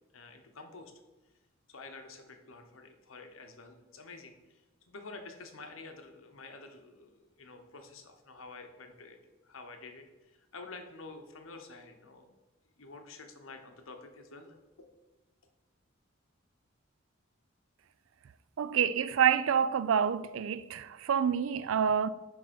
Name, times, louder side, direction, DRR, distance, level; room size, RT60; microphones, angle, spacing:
voice 1, 0.1-0.9 1.7-4.3 4.9-9.2 9.4-12.3 12.8-14.9, left 3 dB, 80° left, 0.9 m, -49 dB
voice 2, 18.6-22.1, right 8 dB, 75° right, 0.4 m, -27 dB
7.8 x 3.5 x 5.1 m
head